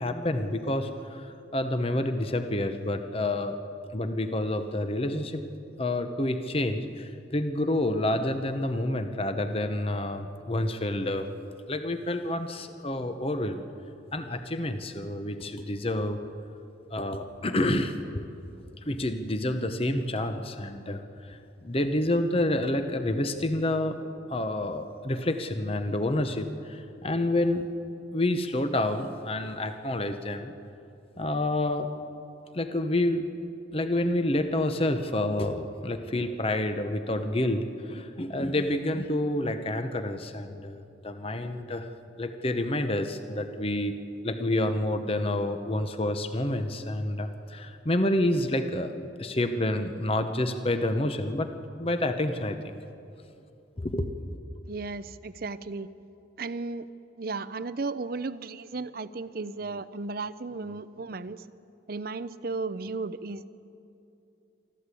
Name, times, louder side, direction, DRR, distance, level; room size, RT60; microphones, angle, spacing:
voice 1, 0.0-3.6 3.9-5.4 5.8-11.3 11.7-13.7 14.1-16.2 16.9-18.3 18.9-24.0 24.3-27.6 28.1-30.5 31.2-31.9 32.5-33.2 33.7-43.9 44.2-48.9 49.2-51.5 51.8-52.7 53.8-54.4, left 1 dB, 30° left, 8 dB, 0.9 m, -28 dB
voice 2, 54.7-55.9 56.4-56.9 57.2-61.4 61.9-63.5, right 3 dB, 50° right, 15 dB, 0.6 m, -35 dB
24.0 x 14.0 x 8.4 m, 2.7 s
head